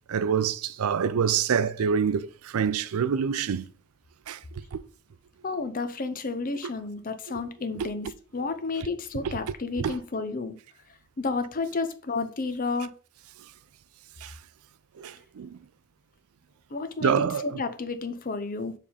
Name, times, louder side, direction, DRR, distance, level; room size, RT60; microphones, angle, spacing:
voice 1, 0.1-2.3 2.5-3.7 4.3-4.4 4.7-4.8 7.8-7.9 9.8-9.9 14.2-14.3 15.0-15.6 17.0-17.6, right 7 dB, 85° right, 0.4 m, -26 dB
voice 2, 5.4-10.6 11.2-12.9 16.7-18.7, left 3 dB, 40° left, 0.7 m, -31 dB
7.1 x 3.5 x 5.0 m
head